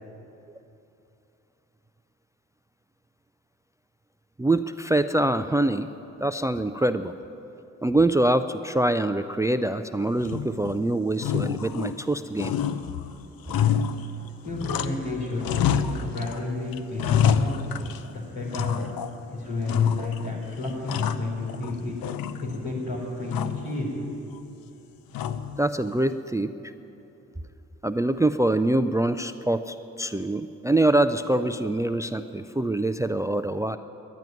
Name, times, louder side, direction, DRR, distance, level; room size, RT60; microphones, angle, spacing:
voice 1, 4.4-5.9 6.2-7.1 7.8-12.5 25.6-26.5 27.8-33.8, right 1 dB, 10° right, 11 dB, 0.4 m, -24 dB
sound 1, 10.2-10.8 11.2-12.1 12.4-15.1 15.4-16.4 16.7-18.1 18.5-19.2 19.7-20.3 20.6-21.7 22.0-22.7 23.3-23.7 25.1-25.6, left 8 dB, 65° left, 0.7 m, -27 dB
voice 2, 14.2-15.5 15.8-17.5 18.1-18.8 19.3-21.9 22.4-24.0, left 2 dB, 80° left, -4 dB, 3.9 m, -32 dB
11.0 x 10.5 x 9.4 m, 2.9 s
hypercardioid pair, 45°, 38 cm